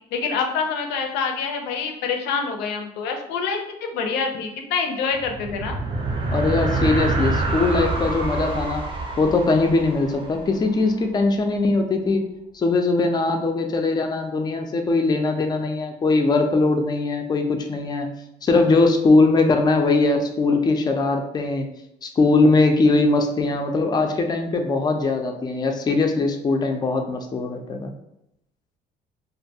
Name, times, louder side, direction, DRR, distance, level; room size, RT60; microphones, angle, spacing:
voice 1, 0.1-5.8, left 5 dB, 90° left, 4 dB, 0.5 m, -26 dB
sound 1, 5.1-10.9, right 2 dB, 30° right, 0.5 m, -26 dB
voice 2, 6.3-8.8 9.2-12.3 12.5-18.1 18.4-21.7 22.0-27.9, left 3 dB, 25° left, 4 dB, 0.4 m, -20 dB
2.5 x 2.2 x 2.7 m, 0.83 s
cardioid pair, 110°, 17 cm